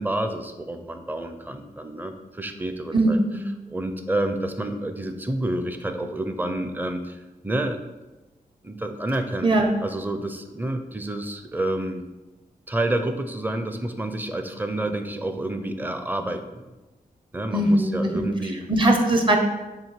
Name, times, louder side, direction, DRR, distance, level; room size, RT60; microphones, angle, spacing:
voice 1, 0.0-3.2 3.7-7.8 8.6-9.5 9.8-12.0 12.7-16.6 17.3-18.6, right 1 dB, 10° right, 7 dB, 0.6 m, -29 dB
voice 2, 2.9-3.5 9.4-9.8 17.5-19.4, right 1 dB, 35° right, 3 dB, 1.0 m, -21 dB
7.5 x 2.6 x 5.9 m, 1.1 s
wide cardioid pair, 100°, 15 cm